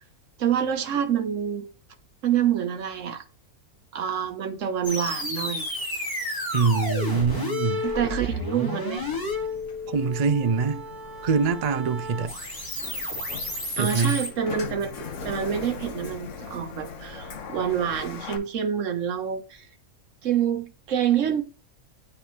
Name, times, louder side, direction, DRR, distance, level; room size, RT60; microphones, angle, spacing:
voice 1, 0.4-1.7 2.2-3.2 3.9-5.7 7.8-9.1 13.8-19.7 20.2-21.4, right 9 dB, 60° right, 1.2 m, -27 dB
sound 1, 4.8-14.3, left 1 dB, 15° left, 1.9 m, -32 dB
voice 2, 6.5-7.8 9.9-10.8 11.2-12.3 13.8-14.2, right 5 dB, 80° right, 0.3 m, -24 dB
Sliding door, 9.0-18.4, left 4 dB, 60° left, 1.1 m, -40 dB
9.7 x 3.4 x 3.1 m
omnidirectional pair, 1.5 m